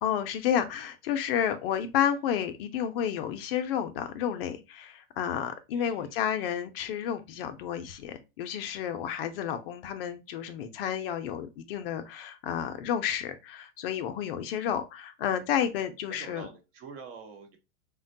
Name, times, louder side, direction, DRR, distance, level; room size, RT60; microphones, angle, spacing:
voice 1, 0.0-16.5, left 9 dB, 50° left, 0.5 m, -31 dB
voice 2, 5.7-6.1 16.1-17.6, right 5 dB, 50° right, 0.9 m, -46 dB
3.4 x 2.2 x 2.5 m
hypercardioid pair, 135°, 37 cm